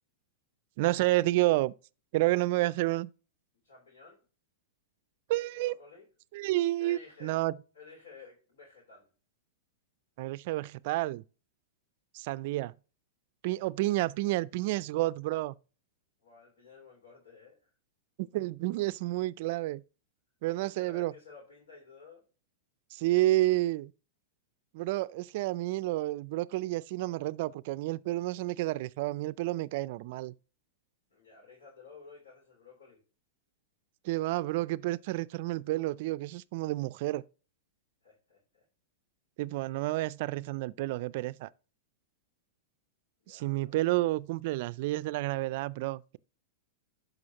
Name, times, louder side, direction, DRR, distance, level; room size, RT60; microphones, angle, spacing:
voice 1, 0.8-1.7 2.1-3.1 5.3-5.8 6.3-7.5 10.2-11.2 12.1-12.7 13.4-15.5 18.2-19.8 20.4-21.1 22.9-23.9 24.7-30.3 34.0-37.2 39.4-41.5 43.3-46.2, right 18 dB, 55° right, 0.3 m, -30 dB
voice 2, 3.6-4.3 5.6-6.1 6.8-7.4 7.7-9.1 16.2-17.6 20.4-22.2 31.1-33.0 38.0-38.6 43.2-43.8, left 4 dB, 80° left, 3.8 m, -53 dB
12.5 x 5.1 x 2.9 m
hypercardioid pair, 120°, 0 cm